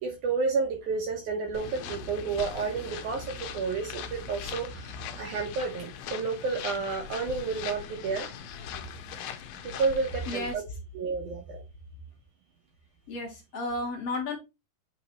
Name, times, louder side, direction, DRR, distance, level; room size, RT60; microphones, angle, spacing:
voice 1, 0.0-8.3 9.6-10.6 10.9-11.6, right 4 dB, 70° right, 3 dB, 1.9 m, -31 dB
sound 1, 1.5-10.6, left 7 dB, 75° left, 2.3 m, -40 dB
voice 2, 13.1-14.4, left 2 dB, 55° left, 1 dB, 1.8 m, -32 dB
8.0 x 3.2 x 4.0 m, 0.24 s
omnidirectional pair, 4.6 m